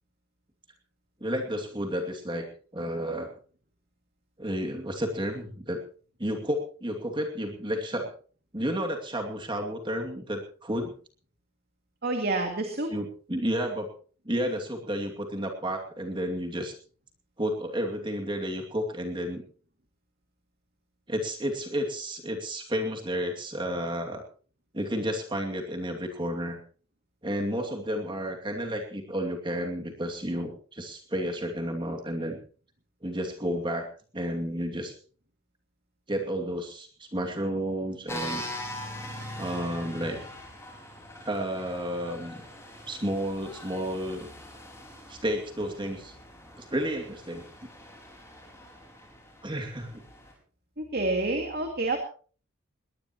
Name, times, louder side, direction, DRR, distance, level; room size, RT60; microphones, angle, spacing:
voice 1, 1.2-2.5 2.7-3.3 4.4-5.8 6.2-8.1 8.5-10.9 12.9-13.9 14.2-16.8 17.4-19.4 21.1-24.2 24.7-26.6 27.2-32.4 33.0-33.9 34.1-35.0 36.1-38.4 39.4-40.2 41.2-42.4 42.9-44.3 45.1-46.1 46.6-47.4 49.4-50.0, equal, 20° right, 2 dB, 2.5 m, -31 dB
voice 2, 12.0-12.9 50.8-52.0, right 2 dB, 45° right, 4 dB, 2.4 m, -28 dB
sound 1, 38.1-50.3, left 1 dB, 15° left, 4.8 m, -43 dB
21.0 x 19.0 x 3.0 m, 0.40 s
head